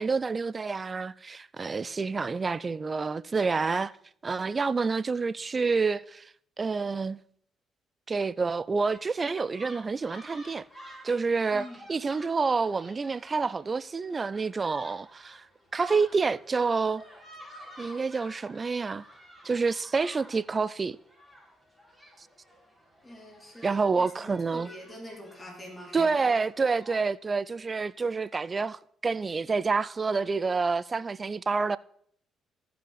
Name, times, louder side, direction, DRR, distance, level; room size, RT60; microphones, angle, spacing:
voice 1, 0.0-3.9 4.2-6.3 6.6-7.2 8.1-10.6 11.0-15.5 15.7-17.0 17.8-19.0 19.4-21.0 23.6-24.7 25.9-31.8, right 4 dB, 35° right, 0.3 m, -28 dB
sound 1, 8.9-27.1, equal, 5° right, 4.8 m, -52 dB
voice 2, 23.0-26.3, left 1 dB, 25° left, 3.1 m, -45 dB
15.5 x 5.6 x 4.1 m
supercardioid pair, 65°, 0 cm